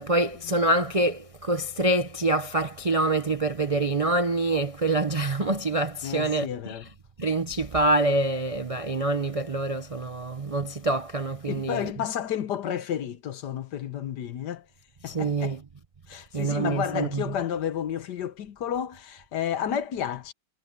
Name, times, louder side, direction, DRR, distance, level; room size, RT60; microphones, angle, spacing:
voice 1, 0.0-6.8 7.2-11.9 15.1-15.6 16.3-17.2, right 2 dB, 50° right, 0.4 m, -26 dB
voice 2, 6.0-6.9 11.5-14.7 15.0-15.6 16.1-20.3, left 9 dB, 65° left, 1.5 m, -31 dB
omnidirectional pair, 2.1 m